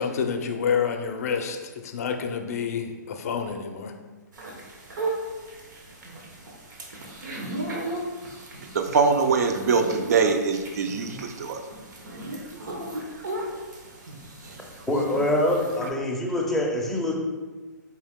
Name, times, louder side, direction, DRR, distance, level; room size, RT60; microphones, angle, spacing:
voice 1, 0.0-3.9, left 6 dB, 55° left, 6 dB, 0.5 m, -28 dB
sound 1, 4.3-15.9, right 1 dB, 80° right, 1.1 m, -36 dB
voice 2, 8.7-11.6, right 5 dB, 55° right, 6 dB, 0.5 m, -23 dB
voice 3, 14.9-17.2, left 1 dB, ahead, -3 dB, 0.5 m, -24 dB
4.6 x 2.8 x 3.5 m, 1.3 s
hypercardioid pair, 155°, 10 cm